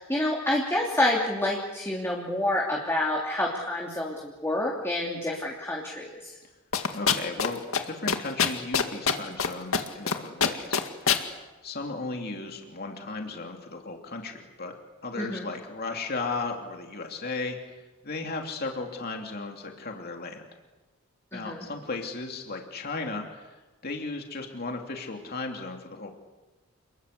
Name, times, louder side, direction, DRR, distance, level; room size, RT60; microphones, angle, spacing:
voice 1, 0.0-6.3 15.2-15.5 21.3-21.7, left 1 dB, 10° left, -2 dB, 3.0 m, -28 dB
sound 1, 6.7-7.5 7.7-7.8 8.1-9.5 9.7-10.1 10.4-11.2, left 6 dB, 75° left, 2.1 m, -23 dB
voice 2, 6.9-7.6 7.8-14.7 15.0-17.6 18.0-20.4 21.3-26.1, left 3 dB, 45° left, 3 dB, 2.9 m, -35 dB
29.0 x 22.0 x 8.4 m, 1.2 s
head